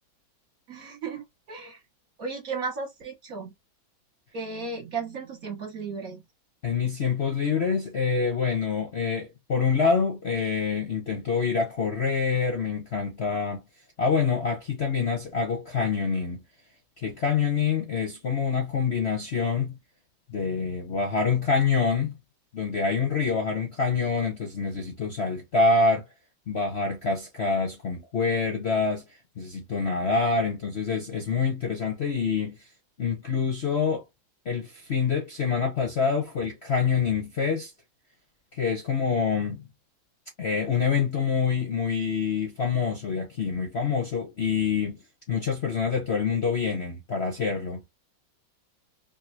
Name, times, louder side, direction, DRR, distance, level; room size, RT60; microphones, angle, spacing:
voice 1, 0.7-1.8 2.2-3.5 4.3-6.2, right 4 dB, 50° right, 1.4 m, -35 dB
voice 2, 6.6-13.6 14.0-16.4 17.0-19.8 20.3-22.2 22.5-26.0 26.5-29.0 29.4-32.6 33.0-34.0 34.4-37.7 38.5-39.6 40.4-45.0 45.3-47.8, left 5 dB, 45° left, 0.9 m, -26 dB
3.7 x 2.7 x 2.7 m
omnidirectional pair, 2.2 m